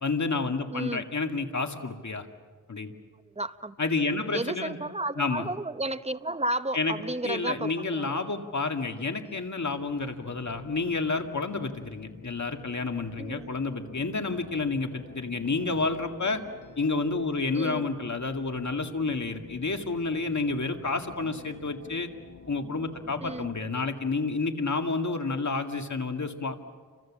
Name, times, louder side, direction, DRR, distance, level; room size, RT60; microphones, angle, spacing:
voice 1, 0.0-2.3 2.7-2.9 3.8-4.8 5.2-5.5 6.7-6.9 7.2-16.4 16.8-22.1 22.5-26.6, left 3 dB, 65° left, 5 dB, 2.2 m, -30 dB
voice 2, 0.7-1.0 3.4-3.7 4.3-7.7 8.0-8.1 13.2-13.5 17.5-17.9 23.2-23.5, right 1 dB, 20° right, 11 dB, 1.0 m, -32 dB
sound 1, 8.9-23.5, left 3 dB, 80° left, 4.9 m, -50 dB
30.0 x 25.5 x 7.5 m, 1.5 s
wide cardioid pair, 60°, 31 cm